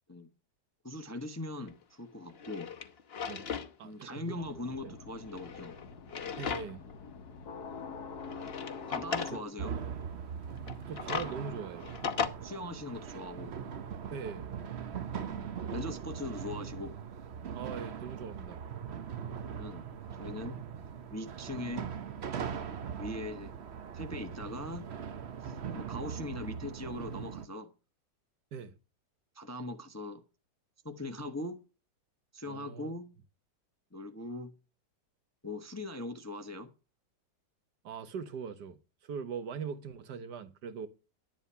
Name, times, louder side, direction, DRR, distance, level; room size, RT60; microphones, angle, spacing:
voice 1, 0.8-2.7 3.8-5.7 8.9-9.7 12.4-13.5 15.1-16.9 19.5-19.8 20.2-20.6 21.1-21.9 22.9-23.5 23.9-24.8 25.4-27.7 29.3-30.2 30.8-31.6 32.3-33.1 33.9-34.5 35.4-36.7, left 1 dB, 10° left, 0.8 m, -40 dB
Drawer open or close, 1.7-1.8 2.3-3.7 4.1-4.2 5.2-6.9 7.3-7.4 8.2-9.4 10.6-12.3, left 6 dB, 40° left, 1.1 m, -37 dB
voice 2, 3.8-4.4 4.8-5.0 6.4-6.8 9.3-9.4 10.9-11.9 14.1-14.5 17.5-18.6 28.5-28.7 32.5-32.9 37.8-38.8 39.0-40.9, right 6 dB, 70° right, 1.6 m, -41 dB
sound 1, 4.4-9.4, left 5 dB, 65° left, 1.6 m, -45 dB
sound 2, 9.6-27.5, right 7 dB, 50° right, 0.9 m, -40 dB
11.5 x 10.5 x 5.6 m
omnidirectional pair, 1.9 m